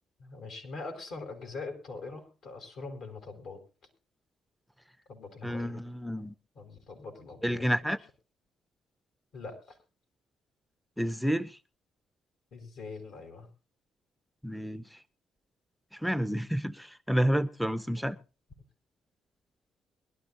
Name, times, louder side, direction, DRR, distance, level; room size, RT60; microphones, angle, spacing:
voice 1, 0.2-3.6 5.1-5.8 6.5-7.8 9.3-9.8 12.5-13.5 18.0-18.1, left 3 dB, 75° left, 5.0 m, -43 dB
voice 2, 5.4-6.3 7.4-8.0 11.0-11.6 14.4-15.0 15.9-18.2, equal, ahead, 0.6 m, -30 dB
22.5 x 12.0 x 2.6 m
cardioid pair, 90°, 0 cm